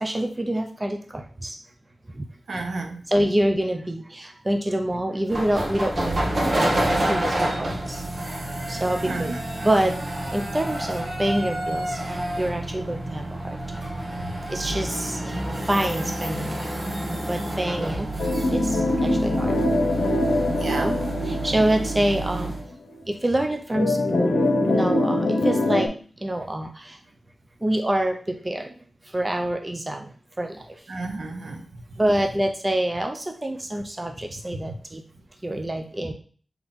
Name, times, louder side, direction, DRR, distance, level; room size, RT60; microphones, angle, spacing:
voice 1, 0.0-1.6 2.1-2.3 3.1-8.0 8.7-9.3 9.6-10.0 10.3-13.9 14.5-15.4 15.7-16.8 17.3-18.1 18.5-19.6 20.7-21.0 21.2-22.6 23.1-24.3 24.7-25.9 26.2-27.0 27.6-28.7 29.0-30.1 30.4-30.8 32.0-35.0 35.4-36.1, right 1 dB, 20° right, 4 dB, 0.5 m, -26 dB
voice 2, 2.5-3.0 9.0-9.4 14.2-14.3 20.5-21.0 30.9-31.7, right 2 dB, 75° right, 3 dB, 0.7 m, -32 dB
sound 1, 5.3-22.6, right 1 dB, 50° right, 1.0 m, -28 dB
sound 2, 18.2-22.5 22.9-23.0 23.7-25.9, left 2 dB, 85° left, 0.7 m, -23 dB
4.0 x 2.9 x 3.6 m, 0.42 s
wide cardioid pair, 110°, 0 cm